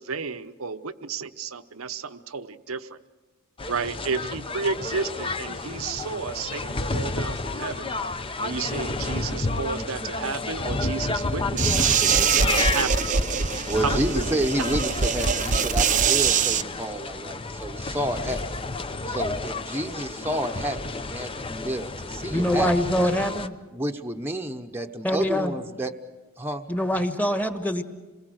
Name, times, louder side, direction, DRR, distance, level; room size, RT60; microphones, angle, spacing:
voice 1, 0.0-3.0 3.7-7.9 8.4-12.0 12.4-13.1 13.8-14.3, right 5 dB, 80° right, 11 dB, 0.9 m, -32 dB
sound 1, 3.6-23.5, left 3 dB, 25° left, 0.7 m, -31 dB
sound 2, 11.6-16.6, right 6 dB, 35° right, 0.6 m, -23 dB
voice 2, 13.6-18.4 19.1-22.7 23.7-25.9 26.4-26.7, right 1 dB, 10° right, 1 dB, 0.9 m, -30 dB
voice 3, 22.3-23.5 25.0-25.5 26.7-27.8, equal, 10° left, 6 dB, 1.4 m, -24 dB
27.5 x 21.5 x 6.5 m, 1.2 s
head